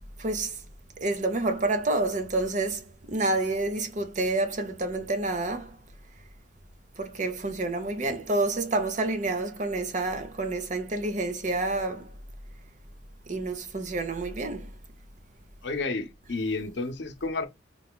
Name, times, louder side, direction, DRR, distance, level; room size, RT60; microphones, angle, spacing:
voice 1, 0.2-0.6 1.0-5.8 7.0-12.1 13.3-14.7, right 2 dB, 40° right, 0.6 m, -28 dB
voice 2, 15.6-17.5, left 3 dB, 65° left, 0.7 m, -31 dB
3.7 x 2.3 x 3.7 m
head